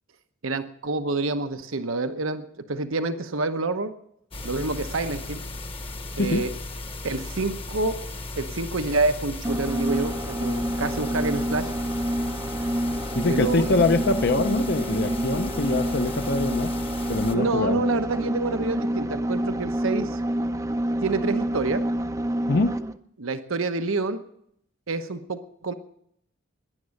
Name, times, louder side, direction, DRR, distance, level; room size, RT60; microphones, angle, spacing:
voice 1, 0.4-2.4 2.7-3.9 4.4-5.4 6.2-6.5 7.0-8.0 8.4-11.7 13.3-13.8 17.3-20.2 21.0-21.8 23.2-24.2 24.9-25.7, right 3 dB, 85° right, 9 dB, 1.0 m, -27 dB
sound 1, 4.3-17.3, left 2 dB, 25° left, 1.0 m, -36 dB
sound 2, 9.4-23.0, right 1 dB, 15° right, 0.5 m, -28 dB
voice 2, 13.1-16.7 17.1-17.8 22.5-22.8, left 3 dB, 55° left, 9 dB, 0.7 m, -24 dB
18.5 x 11.0 x 6.5 m, 0.73 s
head